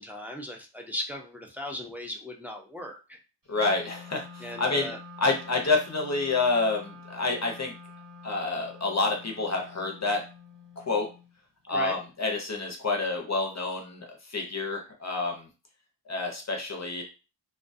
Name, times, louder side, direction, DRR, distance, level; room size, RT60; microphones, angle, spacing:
voice 1, 0.0-3.2 4.4-5.0 11.7-12.0, left 1 dB, 5° right, 1 dB, 0.4 m, -37 dB
voice 2, 3.5-7.7 8.2-10.2 10.8-11.1 11.7-15.5 16.1-17.0, left 3 dB, 40° left, 2 dB, 0.6 m, -28 dB
Wind instrument woodwind instrument, 3.5-11.3, left 4 dB, 50° right, 1.2 m, -48 dB
2.3 x 2.2 x 2.6 m, 0.31 s
wide cardioid pair, 105°, 44 cm